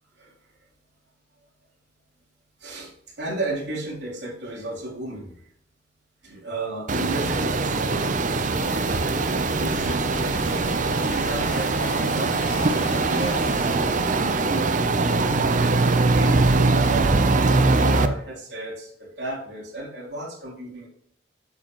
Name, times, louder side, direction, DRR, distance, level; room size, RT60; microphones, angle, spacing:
voice 1, 2.6-2.9 3.2-5.3 6.2-9.1 9.4-10.7 11.1-14.8 15.2-15.8 16.1-20.9, right 2 dB, 65° right, -4 dB, 3.5 m, -34 dB
sound 1, 6.9-18.1, right 3 dB, 45° right, 0.6 m, -22 dB
sound 2, 8.6-14.6, left 2 dB, 80° left, 1.2 m, -38 dB
8.3 x 7.2 x 3.0 m, 0.67 s
head